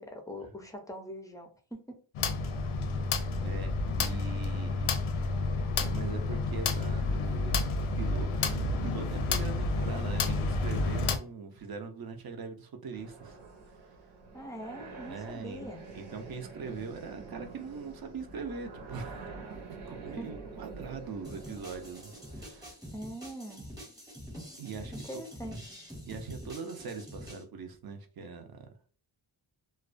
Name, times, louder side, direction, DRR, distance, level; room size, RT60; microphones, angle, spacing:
voice 1, 0.0-2.0 14.3-15.9 20.2-20.5 22.9-23.7 25.1-25.7, equal, 10° left, 3 dB, 0.3 m, -42 dB
sound 1, 2.1-11.2, left 3 dB, 85° left, 0.5 m, -30 dB
voice 2, 3.4-4.9 5.8-13.4 15.1-15.7 15.9-22.8 24.6-25.2 26.1-28.7, right 5 dB, 50° right, 5 dB, 0.5 m, -42 dB
sound 2, 12.9-22.7, right 4 dB, 75° right, 0.8 m, -47 dB
sound 3, 21.2-27.4, equal, 10° right, 0.8 m, -46 dB
2.3 x 2.2 x 2.4 m, 0.40 s
wide cardioid pair, 100°, 48 cm